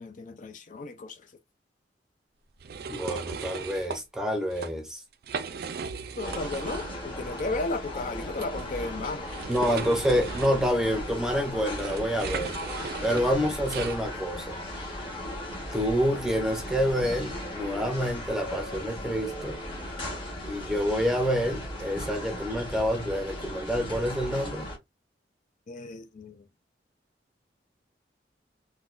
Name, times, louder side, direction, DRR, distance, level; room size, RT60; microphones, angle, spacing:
voice 1, 0.0-1.3 6.2-9.3 25.7-26.5, left 2 dB, 45° left, 0.4 m, -34 dB
sound 1, 2.6-4.0 4.4-4.7 5.1-7.0 7.3-7.4 8.4-14.0, right 5 dB, 55° right, 0.4 m, -37 dB
voice 2, 2.9-5.0 9.5-12.6 13.0-14.6 15.7-19.6 20.4-24.7, equal, 5° right, 0.6 m, -27 dB
sound 2, 6.2-24.8, left 1 dB, 30° left, 1.3 m, -37 dB
3.9 x 2.2 x 2.5 m
head